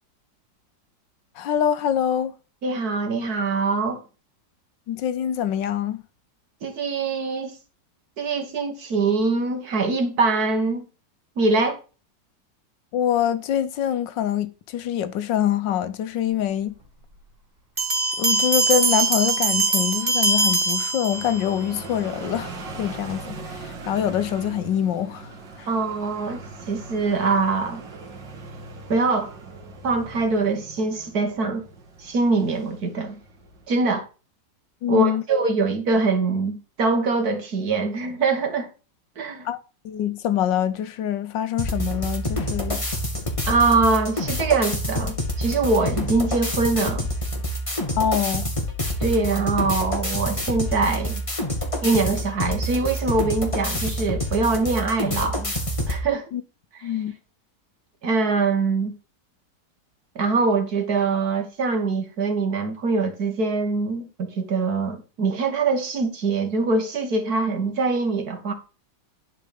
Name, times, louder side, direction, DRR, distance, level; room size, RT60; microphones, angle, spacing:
voice 1, 1.4-2.3 4.9-6.0 12.9-16.7 18.2-25.3 25.6-25.7 34.8-35.2 39.4-39.6 39.8-42.8 48.0-48.5 56.3-56.4 56.8-57.1, left 10 dB, 85° left, 1.5 m, -25 dB
voice 2, 2.6-4.0 6.6-7.5 8.2-10.9 11.4-11.8 25.7-27.8 28.9-29.3 29.8-31.6 32.0-33.2 33.7-34.1 34.9-38.7 39.2-39.5 43.5-47.1 49.0-51.2 51.8-55.5 55.9-56.3 56.7-56.9 58.0-58.9 60.2-68.5, right 3 dB, 60° right, 2.1 m, -23 dB
Bell, 17.8-21.6, right 3 dB, 25° right, 1.9 m, -22 dB
sound 1, 21.1-33.7, right 3 dB, 90° right, 2.5 m, -40 dB
sound 2, 41.6-56.0, equal, 20° left, 2.2 m, -27 dB
11.5 x 4.8 x 5.1 m
omnidirectional pair, 1.9 m